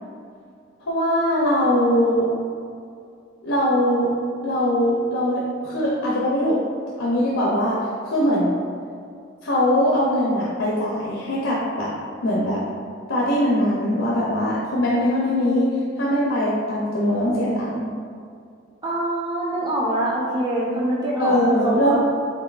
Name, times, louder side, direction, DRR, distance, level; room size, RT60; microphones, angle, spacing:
voice 1, 0.9-2.3 3.4-4.1 4.4-6.6 7.0-7.8 8.1-8.5 9.4-11.9 12.2-12.6 13.1-15.7 16.0-17.9 21.2-22.0, equal, 75° left, -6 dB, 0.7 m, -21 dB
voice 2, 18.8-22.0, right 1 dB, 20° right, -6 dB, 0.6 m, -24 dB
5.5 x 3.5 x 2.4 m, 2.3 s
head